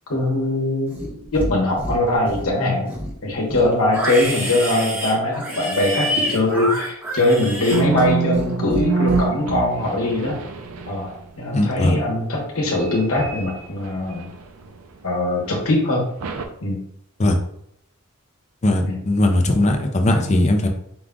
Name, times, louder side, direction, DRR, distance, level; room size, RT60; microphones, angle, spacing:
voice 1, 0.1-2.9 3.2-10.4 10.9-14.3 15.0-16.0 16.6-16.8 18.8-19.0, left 1 dB, 75° left, -1 dB, 1.1 m, -21 dB
Livestock farm animals working animals, 0.9-1.5 1.8-2.5 2.9-8.5 8.7-9.2, equal, 10° right, 0.9 m, -27 dB
sound 1, 7.7-11.3 12.6-14.9 15.4-15.6 16.2-16.5, right 5 dB, 75° right, 0.5 m, -26 dB
voice 2, 11.5-12.0 17.2-17.4 18.6-20.7, left 1 dB, 30° left, 4 dB, 0.5 m, -18 dB
4.9 x 2.3 x 3.7 m, 0.73 s
head